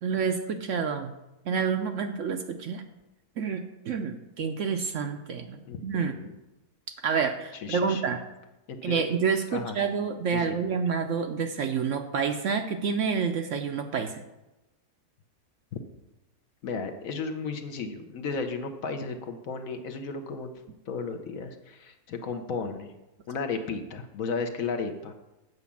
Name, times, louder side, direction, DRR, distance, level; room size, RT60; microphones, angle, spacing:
voice 1, 0.0-1.1 1.5-2.8 3.4-6.1 7.0-8.2 8.8-14.2, right 6 dB, 65° right, 6 dB, 0.9 m, -28 dB
voice 2, 5.6-6.3 7.5-8.2 8.7-9.0 9.5-9.8 10.3-10.7 16.6-20.5 20.9-22.9 23.3-25.1, left 4 dB, 65° left, 7 dB, 1.2 m, -34 dB
8.2 x 4.9 x 7.1 m, 0.99 s
omnidirectional pair, 1.6 m